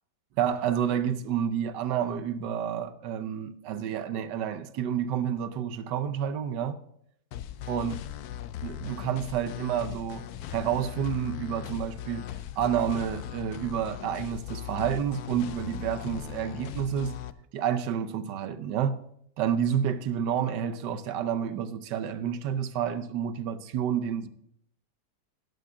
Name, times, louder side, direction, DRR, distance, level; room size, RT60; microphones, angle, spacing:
voice 1, 0.4-6.8 7.7-8.0 8.6-12.3 12.6-17.2 17.5-19.0 19.4-24.3, right 9 dB, 80° right, 1.4 m, -29 dB
sound 1, 7.3-17.3, left 11 dB, 70° left, 1.0 m, -39 dB
12.5 x 10.5 x 3.7 m
omnidirectional pair, 1.9 m